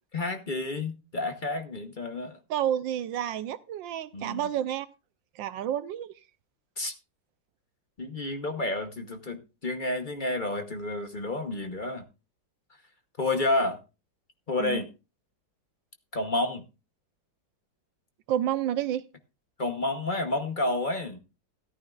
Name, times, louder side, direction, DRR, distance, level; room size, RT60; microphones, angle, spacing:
voice 1, 0.1-2.4 4.1-4.4 6.8-6.9 8.0-12.0 13.2-13.8 14.5-14.9 16.1-16.7 19.6-21.2, left 2 dB, 35° left, 0.8 m, -30 dB
voice 2, 2.5-4.9 5.4-6.1 14.6-14.8 18.3-19.0, right 10 dB, 85° right, 1.5 m, -30 dB
14.0 x 12.5 x 2.4 m
omnidirectional pair, 2.0 m